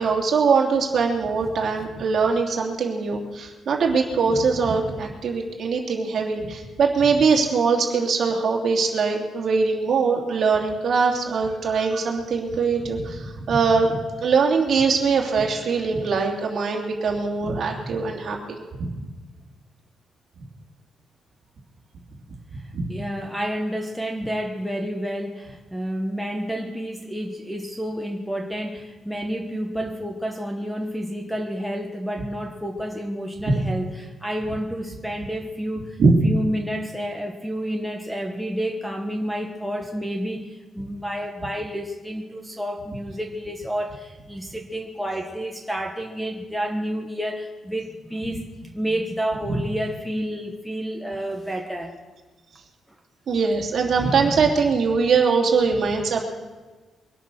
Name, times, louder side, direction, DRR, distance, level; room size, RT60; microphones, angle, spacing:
voice 1, 0.0-18.6 22.7-22.9 33.5-33.6 36.0-36.1 49.5-49.6 53.3-56.2, right 5 dB, 50° right, 1 dB, 2.7 m, -22 dB
voice 2, 22.5-52.0, equal, ahead, 3 dB, 1.2 m, -30 dB
23.0 x 9.0 x 6.3 m, 1.3 s
cardioid pair, 150°, 0 cm